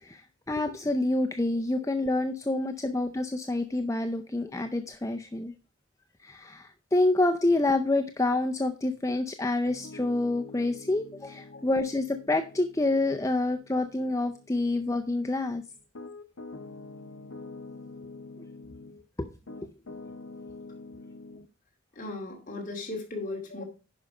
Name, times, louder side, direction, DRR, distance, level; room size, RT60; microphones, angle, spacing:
voice 1, 0.0-5.5 6.2-15.6 19.2-19.3, left 2 dB, 15° left, 5 dB, 0.5 m, -27 dB
Piano, 9.7-19.0 19.5-21.5, left 3 dB, 80° left, 0.8 m, -46 dB
voice 2, 21.9-23.6, left 2 dB, 40° left, 0 dB, 2.4 m, -36 dB
10.5 x 5.4 x 4.8 m, 0.32 s
head